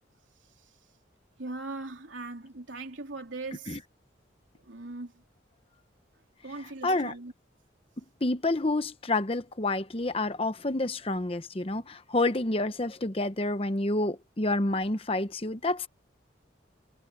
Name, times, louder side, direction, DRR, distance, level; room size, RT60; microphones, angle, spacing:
voice 1, 1.4-3.8 4.6-5.1 6.4-7.3, right 3 dB, 90° right, 3.6 m, -39 dB
voice 2, 6.8-7.1 8.2-15.9, left 2 dB, 30° left, 0.9 m, -28 dB
head